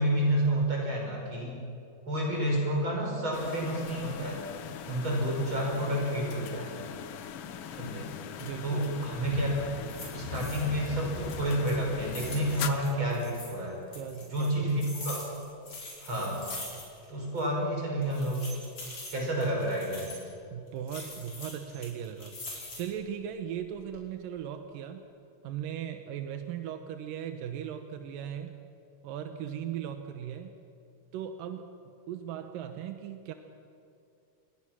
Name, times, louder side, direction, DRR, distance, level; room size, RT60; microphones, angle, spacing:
voice 1, 0.0-1.6 2.1-4.4 4.9-6.8 7.7-8.1 8.6-13.8 14.3-15.2 16.0-16.5 17.1-18.5 19.1-20.1, right 1 dB, 35° right, -2 dB, 7.1 m, -30 dB
sound 1, 3.3-12.7, left 9 dB, 70° left, 1.4 m, -41 dB
voice 2, 8.4-8.9 13.9-14.9 20.5-22.4 22.7-25.1 25.4-28.6 29.0-30.6 31.1-33.3, right 9 dB, 90° right, 7 dB, 2.7 m, -38 dB
Fire, 9.1-13.6, left 7 dB, 85° left, 2.7 m, -44 dB
sound 2, 9.9-10.9 11.2-13.5 13.9-17.1 17.4-17.5 18.0-20.3 20.9-23.0 23.5-24.0, left 2 dB, 45° left, 5.7 m, -44 dB
28.5 x 21.5 x 6.2 m, 2.5 s
omnidirectional pair, 3.8 m